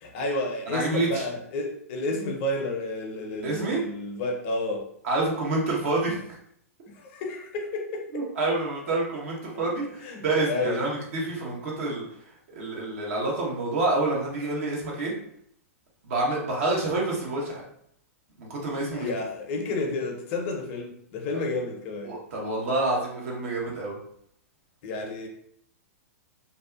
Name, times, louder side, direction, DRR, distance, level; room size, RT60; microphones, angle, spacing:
voice 1, 0.0-4.9 7.0-8.2 10.0-10.9 18.9-22.1 24.8-25.3, left 2 dB, 45° left, 2 dB, 0.6 m, -31 dB
voice 2, 0.7-1.3 3.4-3.8 5.0-6.2 8.1-12.0 12.5-15.1 16.0-17.6 18.4-19.1 22.0-24.0, right 2 dB, 60° right, -2 dB, 1.0 m, -28 dB
2.6 x 2.3 x 2.4 m, 0.68 s
figure-of-eight pair, 105°, 8 cm